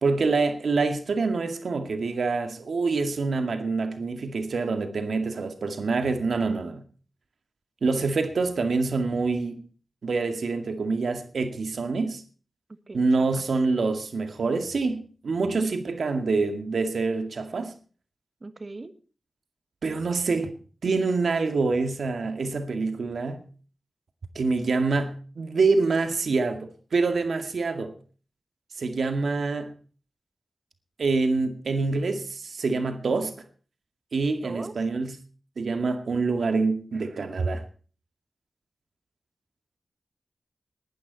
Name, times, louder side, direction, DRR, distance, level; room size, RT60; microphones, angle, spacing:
voice 1, 0.0-6.8 7.8-9.6 10.0-12.2 12.9-17.7 19.8-20.5 20.8-23.5 24.4-27.9 28.8-29.7 31.0-33.3 34.1-35.2 35.6-37.6, right 4 dB, 80° right, 2.1 m, -26 dB
voice 2, 12.9-13.4 15.6-15.9 18.4-18.9 34.4-34.7, right 3 dB, 40° right, 1.6 m, -39 dB
20.0 x 12.0 x 4.1 m
wide cardioid pair, 125°, 0 cm